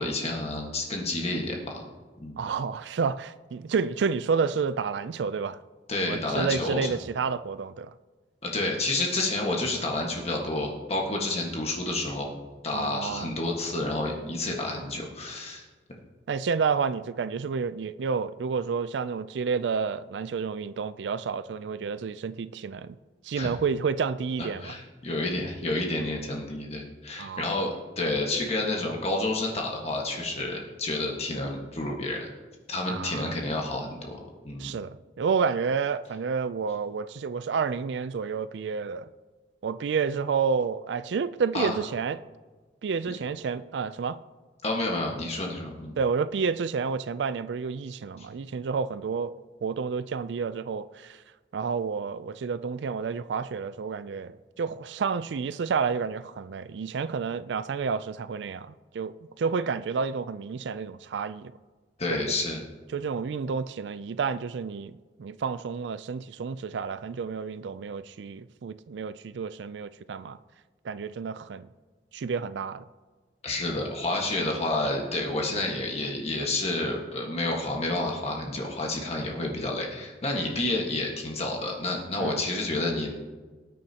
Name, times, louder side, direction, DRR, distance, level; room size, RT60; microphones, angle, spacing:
voice 1, 0.0-1.8 2.2-2.4 5.9-6.9 8.4-12.3 12.6-15.6 23.3-23.5 24.4-32.3 32.7-34.2 34.4-34.7 41.5-41.7 44.6-45.9 48.2-48.3 62.0-62.6 73.4-83.1, left 2 dB, 35° left, 1.5 m, -29 dB
voice 2, 2.4-5.6 6.0-7.9 12.7-13.3 16.3-23.0 23.2-24.7 27.2-27.5 32.9-33.4 34.6-39.1 39.6-42.2 42.8-44.2 46.0-49.3 49.6-51.2 51.5-61.5 62.1-62.2 62.9-70.4 70.8-71.7 72.1-72.8 82.2-82.4, right 5 dB, 80° right, 0.4 m, -30 dB
19.0 x 9.4 x 2.9 m
head